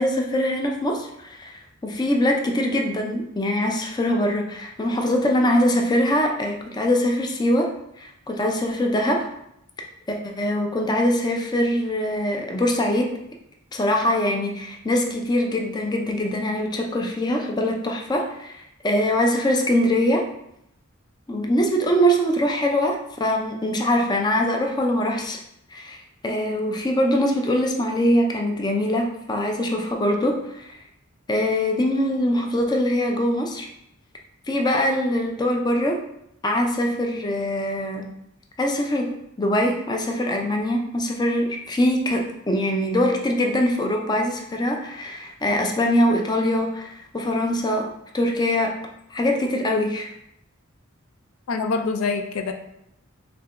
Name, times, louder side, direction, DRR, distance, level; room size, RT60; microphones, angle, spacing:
voice 1, 0.0-7.7 8.0-9.3 10.1-13.1 13.7-20.2 21.3-25.4 25.7-26.0 26.2-30.7 31.3-33.7 34.5-36.0 36.4-38.1 38.6-47.9 48.1-48.8 49.1-50.1, left 1 dB, 20° left, 2 dB, 0.4 m, -23 dB
voice 2, 51.5-52.5, left 4 dB, 80° left, 6 dB, 0.4 m, -25 dB
4.7 x 3.5 x 2.5 m, 0.78 s
head